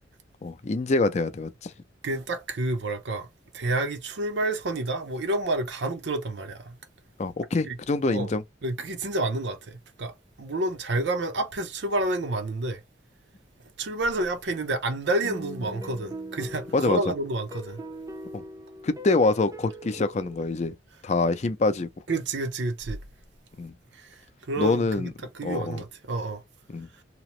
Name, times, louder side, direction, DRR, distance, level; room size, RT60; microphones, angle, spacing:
voice 1, 0.4-1.7 7.2-8.4 16.7-17.0 18.3-18.4 18.8-20.7 21.0-21.9 23.6-23.7 24.6-25.1 25.4-25.8 26.7-26.9, left 3 dB, 40° left, 0.4 m, -25 dB
voice 2, 2.0-3.3 3.5-6.8 7.7-7.8 8.1-8.3 8.6-10.1 10.4-12.8 13.8-17.8 22.1-23.0 24.0-24.2 24.5-25.1 25.3-26.4, right 2 dB, 75° right, 0.6 m, -29 dB
sound 1, 15.2-20.5, equal, 20° right, 0.4 m, -41 dB
2.9 x 2.0 x 2.9 m
head